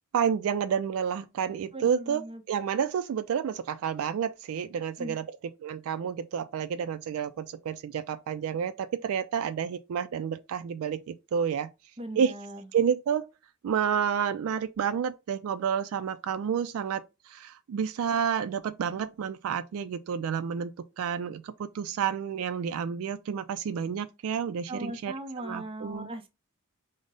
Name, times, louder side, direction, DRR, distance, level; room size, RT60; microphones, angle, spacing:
voice 1, 0.1-2.2 2.5-5.3 5.6-11.7 12.2-12.3 12.7-13.3 13.6-20.7 21.0-26.1, right 7 dB, 70° right, 0.3 m, -30 dB
voice 2, 1.7-2.4 5.0-5.2 12.0-12.6 24.7-26.3, right 1 dB, 25° right, 0.6 m, -38 dB
5.0 x 2.0 x 3.9 m
head